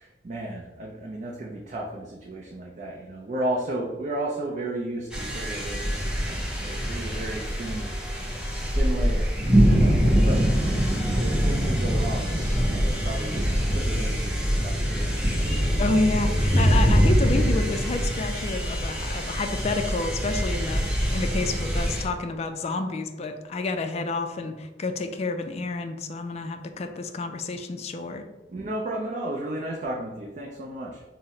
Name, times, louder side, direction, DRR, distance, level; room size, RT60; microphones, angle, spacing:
voice 1, 0.0-8.3 8.7-12.4 12.7-13.4 13.7-15.5 28.5-31.0, right 1 dB, 40° right, -1 dB, 0.4 m, -34 dB
sound 1, 5.1-22.0, equal, 5° right, 0.7 m, -24 dB
voice 2, 15.8-28.2, left 3 dB, 35° left, 6 dB, 0.3 m, -29 dB
3.9 x 2.0 x 4.2 m, 1.1 s
head